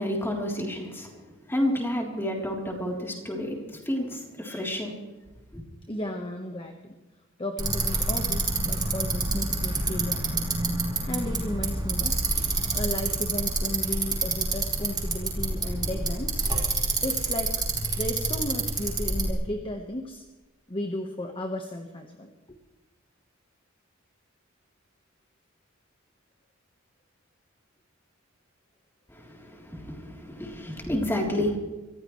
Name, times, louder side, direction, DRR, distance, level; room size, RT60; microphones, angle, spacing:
voice 1, 0.0-5.0 29.1-31.6, left 1 dB, 10° left, 0 dB, 3.6 m, -30 dB
voice 2, 5.9-7.0 7.4-10.4 11.0-12.2 12.7-16.5 17.0-17.6 18.0-20.2 20.7-22.6, left 1 dB, 25° left, 3 dB, 1.4 m, -34 dB
Bicycle, 7.6-19.3, right 3 dB, 20° right, 4.7 m, -28 dB
26.0 x 15.0 x 3.3 m, 1.1 s
head